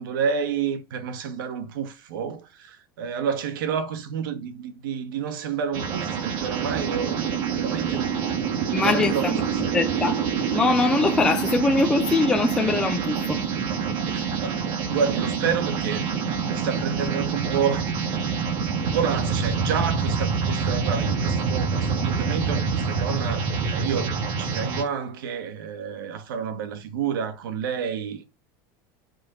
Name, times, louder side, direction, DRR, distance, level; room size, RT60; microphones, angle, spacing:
voice 1, 0.0-9.8 14.1-16.1 16.4-18.2 18.7-28.2, right 7 dB, 85° right, 2.2 m, -30 dB
sound 1, 5.7-24.8, right 6 dB, 40° right, 2.0 m, -26 dB
voice 2, 8.7-9.4 9.7-10.2 10.5-13.4, left 3 dB, 5° left, 0.6 m, -22 dB
9.0 x 5.4 x 5.5 m
supercardioid pair, 175°, 11 cm